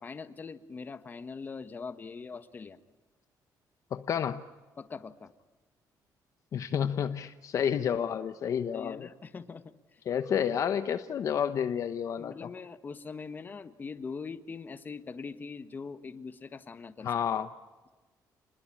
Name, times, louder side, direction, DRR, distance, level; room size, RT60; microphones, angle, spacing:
voice 1, 0.0-2.8 4.8-5.3 8.7-9.6 9.9-10.0 12.2-17.1, left 5 dB, 25° left, 10 dB, 1.4 m, -42 dB
voice 2, 3.9-4.4 6.5-9.1 10.1-12.5 17.0-17.5, left 8 dB, 50° left, 10 dB, 0.9 m, -30 dB
29.5 x 21.0 x 8.7 m, 1.2 s
cardioid pair, 160°, 7 cm